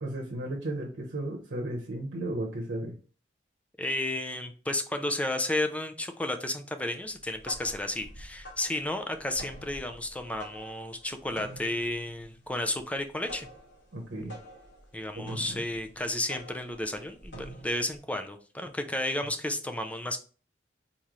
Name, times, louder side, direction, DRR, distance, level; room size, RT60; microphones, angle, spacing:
voice 1, 0.0-2.9 13.9-14.4 15.2-15.6, right 1 dB, 85° right, -1 dB, 0.9 m, -34 dB
voice 2, 3.8-13.5 14.9-20.2, left 1 dB, 5° left, 6 dB, 0.5 m, -32 dB
sound 1, 7.3-18.0, right 1 dB, 70° left, 2.5 m, -47 dB
4.2 x 3.1 x 3.7 m, 0.38 s
head